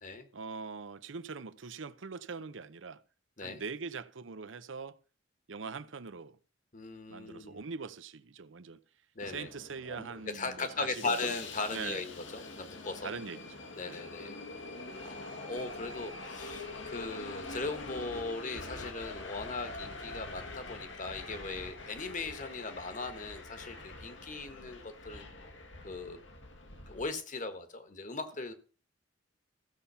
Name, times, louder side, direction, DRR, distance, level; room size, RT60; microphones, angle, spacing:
voice 1, 0.3-3.0 3.4-5.0 5.5-6.4 7.1-8.8 9.3-11.3 11.7-12.0 13.0-13.4 13.8-14.0, right 5 dB, 90° right, 0.7 m, -42 dB
voice 2, 6.7-7.6 9.1-9.5 9.9-13.1 13.7-14.3 15.0-25.3 25.8-26.2 26.9-28.5, left 3 dB, 40° left, 1.4 m, -39 dB
Subway metro underground, 9.2-27.1, left 2 dB, 85° left, 2.1 m, -45 dB
14.5 x 7.2 x 5.7 m
head